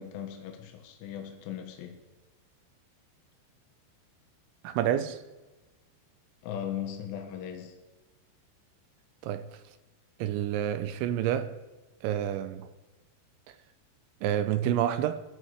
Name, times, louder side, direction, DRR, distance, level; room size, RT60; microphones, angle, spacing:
voice 1, 0.0-2.0 6.4-7.8, left 9 dB, 80° left, 3.9 m, -38 dB
voice 2, 4.6-5.2 9.2-9.5 10.2-11.5 12.0-12.7 14.2-15.2, right 10 dB, 80° right, 3.0 m, -28 dB
22.0 x 13.0 x 4.9 m
omnidirectional pair, 5.6 m